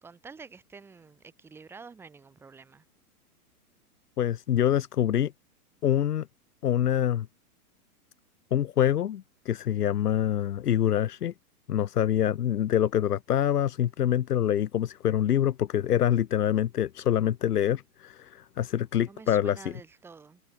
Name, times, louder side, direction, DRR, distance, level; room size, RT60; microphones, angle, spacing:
voice 1, 0.0-2.8 19.1-20.4, right 5 dB, 5° right, 2.5 m, -48 dB
voice 2, 4.2-5.3 5.8-6.3 6.6-7.3 8.5-11.3 11.7-19.7, left 10 dB, 80° left, 1.7 m, -25 dB
hypercardioid pair, 175°, 46 cm